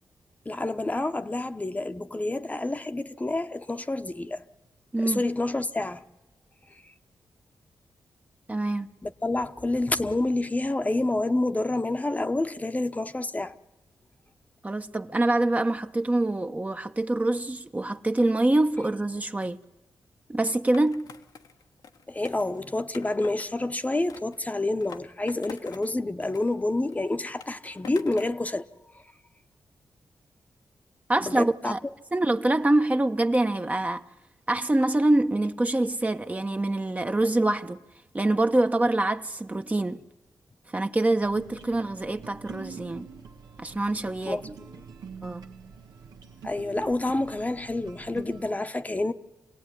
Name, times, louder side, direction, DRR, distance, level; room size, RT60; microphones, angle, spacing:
voice 1, 0.4-4.4 5.0-6.0 9.0-13.5 22.1-28.7 31.2-31.7 44.3-44.4 46.4-49.1, left 2 dB, 25° left, 1.0 m, -28 dB
voice 2, 4.9-5.2 8.5-8.9 14.6-19.6 20.3-21.0 31.1-31.8 32.1-34.0 34.5-37.8 38.1-40.0 40.7-43.1 43.6-44.6 45.2-45.4, right 2 dB, 25° right, 1.0 m, -25 dB
Skateboard, 20.7-23.5 24.1-25.9 26.2-28.4, left 6 dB, 80° left, 1.3 m, -47 dB
sound 1, 41.2-48.5, right 5 dB, 90° right, 1.6 m, -45 dB
26.5 x 17.5 x 9.9 m
cardioid pair, 60°, 7 cm